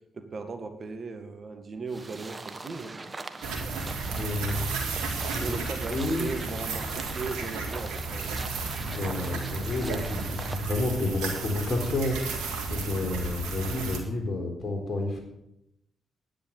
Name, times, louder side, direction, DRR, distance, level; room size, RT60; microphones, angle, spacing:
voice 1, 0.1-2.9 5.4-8.4, right 4 dB, 50° right, 7 dB, 1.8 m, -37 dB
sound 1, 1.9-10.7, right 3 dB, 35° right, 1.3 m, -41 dB
sound 2, 3.4-14.0, right 3 dB, 80° right, 1.9 m, -33 dB
voice 2, 4.1-5.6 5.9-6.2 8.8-12.4 12.7-15.2, left 2 dB, 50° left, 3 dB, 4.0 m, -31 dB
10.5 x 9.8 x 7.1 m, 0.82 s
hypercardioid pair, 45°, 0 cm